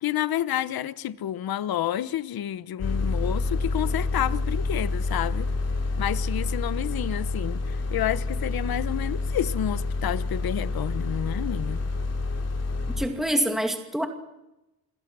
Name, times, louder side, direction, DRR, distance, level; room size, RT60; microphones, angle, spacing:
voice 1, 0.0-5.5 6.0-11.8, left 11 dB, 70° left, 1.0 m, -29 dB
sound 1, 2.8-13.1, left 3 dB, 40° left, 3.9 m, -28 dB
voice 2, 13.0-14.1, equal, ahead, 2.5 m, -26 dB
26.5 x 23.5 x 6.2 m
wide cardioid pair, 140°, 37 cm